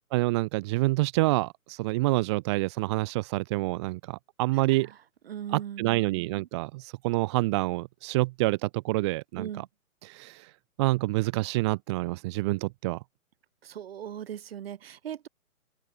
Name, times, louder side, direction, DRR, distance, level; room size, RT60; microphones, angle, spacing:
voice 1, 0.1-4.9 5.5-9.6 10.0-10.5 10.8-13.0, right 21 dB, 20° right, 1.5 m, -27 dB
voice 2, 5.3-6.5 9.4-9.7 13.6-15.3, right 10 dB, 45° right, 3.2 m, -39 dB
open air
hypercardioid pair, 160°, 43 cm